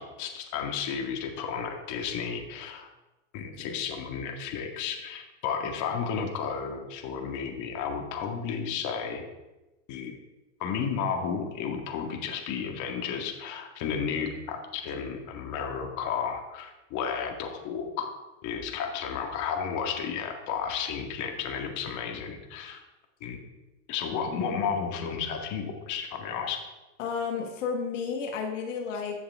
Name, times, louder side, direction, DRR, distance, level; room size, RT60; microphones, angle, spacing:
voice 1, 0.0-2.9 3.3-9.2 9.9-10.2 10.6-18.1 18.4-22.8 23.2-23.4 23.9-26.6, left 6 dB, 55° left, 4 dB, 1.9 m, -32 dB
voice 2, 27.0-29.2, left 5 dB, 90° left, 3 dB, 1.6 m, -32 dB
14.0 x 7.2 x 3.6 m, 1.0 s
supercardioid pair, 110°, 36 cm